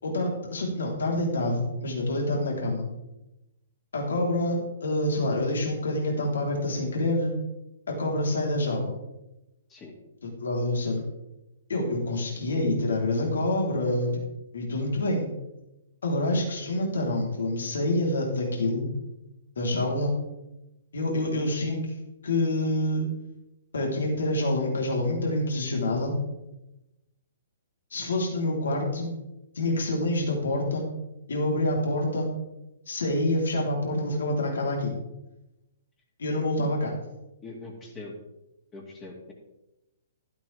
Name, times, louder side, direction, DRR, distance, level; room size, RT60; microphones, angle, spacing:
voice 1, 0.0-2.9 3.9-7.3 7.9-9.0 10.2-11.0 11.7-14.2 14.5-15.3 16.0-18.9 19.6-20.1 20.9-21.8 22.2-23.1 23.7-26.1 27.9-29.1 29.5-30.9 31.3-32.3 32.9-34.9 36.2-36.9, left 1 dB, 65° left, 0 dB, 3.8 m, -27 dB
voice 2, 37.4-38.1 38.7-39.3, left 3 dB, 20° left, -3 dB, 2.6 m, -42 dB
13.0 x 12.5 x 3.5 m, 0.94 s
figure-of-eight pair, 120°, 0 cm